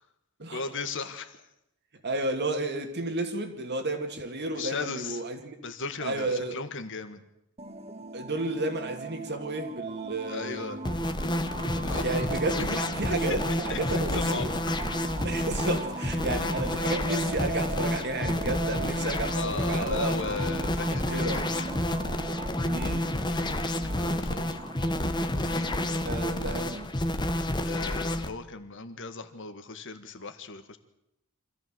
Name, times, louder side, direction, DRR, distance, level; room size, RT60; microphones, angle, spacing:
voice 1, 0.5-1.4 4.5-5.2 5.6-7.2 10.3-10.8 11.8-12.1 13.7-13.8 14.1-14.5 16.6-16.9 19.3-21.3 23.3-23.7 23.9-24.6 25.4-25.8 27.6-30.8, left 4 dB, 55° left, 1.8 m, -37 dB
voice 2, 2.0-5.6 6.0-6.6 8.1-10.8 11.8-14.5 15.2-20.6 20.9-21.5 22.7-23.1 26.0-26.9, right 2 dB, 50° right, 2.5 m, -32 dB
sound 1, 7.6-26.8, right 3 dB, 30° right, 1.2 m, -40 dB
sound 2, 10.8-28.3, left 1 dB, 20° left, 1.3 m, -29 dB
25.0 x 14.5 x 7.8 m
head